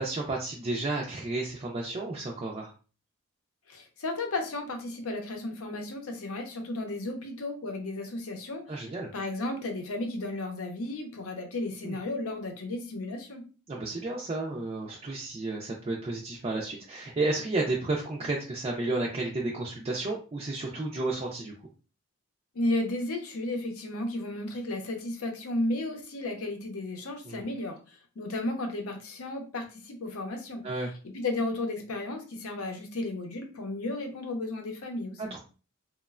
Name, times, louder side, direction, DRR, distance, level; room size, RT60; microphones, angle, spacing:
voice 1, 0.0-2.7 8.7-9.1 11.8-12.0 13.7-21.5 27.3-27.4 30.6-30.9 35.2-35.4, right 2 dB, 30° right, -3 dB, 0.3 m, -32 dB
voice 2, 3.7-8.6 9.1-13.4 22.5-27.8 28.2-30.6 31.0-35.3, left 2 dB, 80° left, 4 dB, 0.6 m, -33 dB
3.0 x 2.1 x 2.3 m, 0.35 s
head